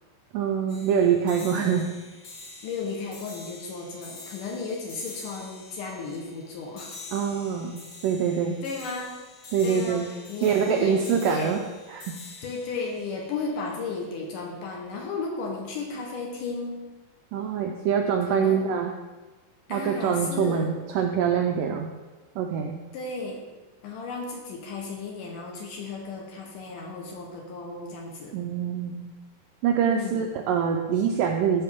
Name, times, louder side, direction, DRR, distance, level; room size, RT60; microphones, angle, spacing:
voice 1, 0.3-1.9 7.1-8.6 9.5-10.1 10.4-11.6 11.9-12.2 17.3-18.9 19.7-21.9 22.4-22.8 28.3-29.1 29.6-31.6, right 7 dB, 90° right, 3 dB, 1.9 m, -25 dB
sound 1, 0.7-14.1, left 3 dB, 45° left, 2.4 m, -46 dB
voice 2, 1.4-1.7 2.6-6.9 8.6-9.1 9.6-11.6 12.4-16.9 18.3-18.7 19.7-20.7 22.9-23.4 23.8-28.4 29.8-30.2, left 4 dB, 70° left, 0 dB, 2.3 m, -34 dB
12.5 x 5.7 x 3.5 m, 1.2 s
omnidirectional pair, 4.5 m